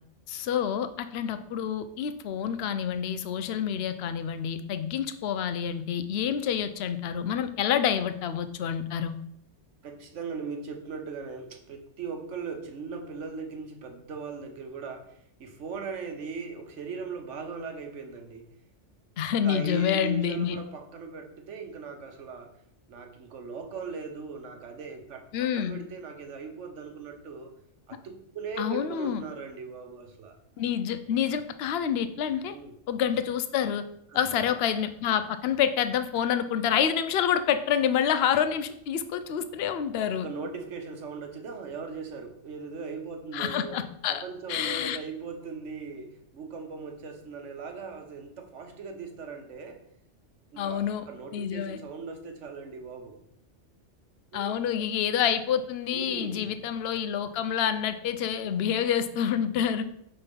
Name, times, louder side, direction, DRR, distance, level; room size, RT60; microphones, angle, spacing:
voice 1, 0.3-9.1 19.2-20.6 25.3-25.7 28.6-29.2 30.6-32.6 32.9-33.8 34.1-40.3 43.3-44.2 44.5-45.0 50.6-51.1 51.3-51.8 54.3-59.8, left 8 dB, 65° left, 11 dB, 0.8 m, -28 dB
voice 2, 9.8-18.5 19.4-22.5 22.9-27.5 27.9-30.4 32.5-32.8 34.1-34.6 40.0-43.8 44.1-49.8 50.5-53.2 54.3-54.8 55.9-56.6, right 5 dB, 75° right, 5 dB, 1.2 m, -39 dB
5.6 x 4.1 x 5.2 m, 0.72 s
omnidirectional pair, 1.2 m